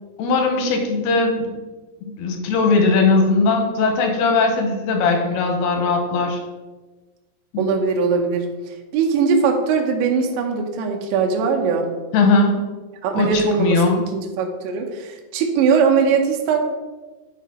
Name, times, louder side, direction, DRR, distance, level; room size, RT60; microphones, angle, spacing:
voice 1, 0.2-1.6 2.2-6.4 7.5-7.6 12.1-12.6 13.2-14.0, left 3 dB, 75° left, 3 dB, 2.5 m, -19 dB
voice 2, 7.6-11.9 13.0-16.6, right 5 dB, 80° right, 2 dB, 3.1 m, -20 dB
12.0 x 4.6 x 3.7 m, 1.3 s
omnidirectional pair, 5.3 m